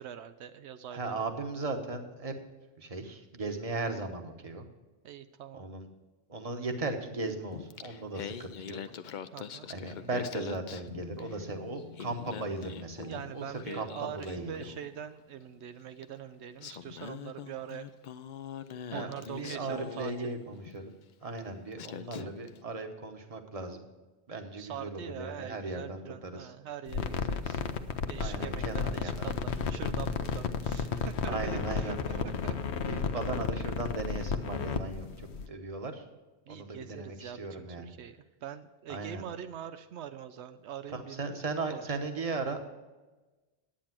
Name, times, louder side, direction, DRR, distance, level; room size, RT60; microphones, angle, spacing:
voice 1, 0.0-1.3 5.0-5.6 9.3-9.7 13.1-17.9 18.9-20.1 24.6-27.7 28.1-32.6 33.0-33.1 36.5-41.4 41.7-42.1, right 9 dB, 80° right, 10 dB, 0.9 m, -43 dB
voice 2, 0.9-2.3 2.8-4.6 5.5-5.9 6.3-8.8 9.7-13.4 13.7-14.6 18.9-19.1 19.3-20.9 21.2-23.8 24.3-26.5 28.2-29.2 31.3-32.3 32.8-35.1 35.5-36.0 36.5-37.9 38.9-39.2 41.2-42.6, right 3 dB, 35° right, 5 dB, 1.1 m, -37 dB
Singing, 7.5-11.5 11.8-15.0 16.0-16.1 16.6-20.8 21.4-21.5 21.8-22.6, left 8 dB, 55° left, 0.6 m, -43 dB
sound 1, 10.9-17.5, left 8 dB, 50° right, 1.5 m, -54 dB
sound 2, 26.9-35.5, left 5 dB, 80° left, 1.0 m, -33 dB
10.0 x 8.7 x 5.9 m, 1.2 s
omnidirectional pair, 1.1 m